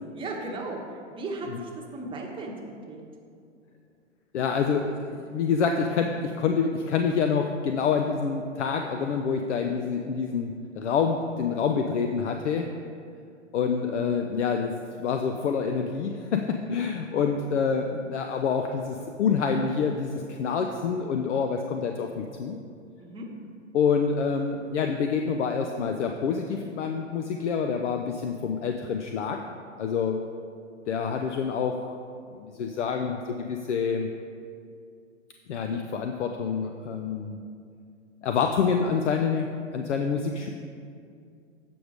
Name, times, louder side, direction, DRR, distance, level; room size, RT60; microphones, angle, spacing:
voice 1, 0.1-2.6 2.9-3.0 23.0-23.3, right 2 dB, 15° right, 0 dB, 1.0 m, -36 dB
voice 2, 4.3-12.7 13.5-14.7 15.0-22.6 23.7-29.4 29.8-30.2 30.9-32.0 32.4-34.1 35.5-37.4 38.2-39.5 39.7-40.5, left 6 dB, 70° left, 4 dB, 0.6 m, -27 dB
7.7 x 5.3 x 5.0 m, 2.3 s
hypercardioid pair, 120°, 36 cm